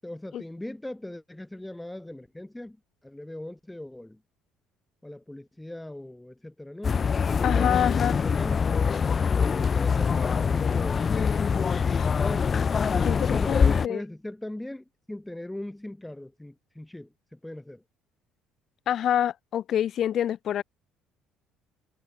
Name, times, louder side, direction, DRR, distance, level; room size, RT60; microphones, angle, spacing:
voice 1, 0.0-2.8 3.0-4.2 5.0-8.7 9.4-12.5 13.3-17.8, left 1 dB, 10° left, 7.8 m, -39 dB
sound 1, 6.8-13.9, left 6 dB, 35° left, 2.0 m, -24 dB
voice 2, 7.4-8.2 12.0-12.1 13.0-14.0 18.9-20.6, left 10 dB, 50° left, 1.3 m, -27 dB
hypercardioid pair, 55°, 0 cm